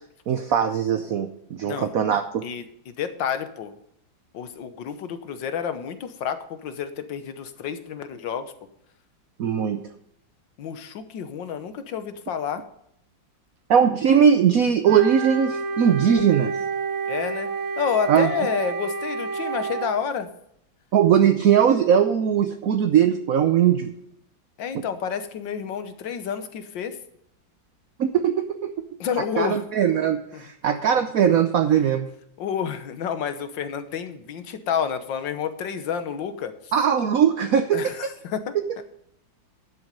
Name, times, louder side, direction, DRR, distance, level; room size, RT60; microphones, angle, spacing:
voice 1, 0.3-2.5 9.4-9.8 13.7-16.6 18.1-18.3 20.9-23.9 28.0-28.7 29.4-32.1 36.7-38.1 38.5-38.6, right 8 dB, 60° right, 8 dB, 0.9 m, -20 dB
voice 2, 2.4-3.7 4.3-8.5 10.6-12.6 17.1-17.5 17.8-20.3 24.6-27.0 29.0-29.6 30.3-30.4 32.4-36.7 37.7-38.8, left 7 dB, 75° left, 10 dB, 1.7 m, -29 dB
Wind instrument woodwind instrument, 14.8-20.0, right 4 dB, 85° right, 1.9 m, -29 dB
12.0 x 7.8 x 5.3 m, 0.72 s
omnidirectional pair, 2.1 m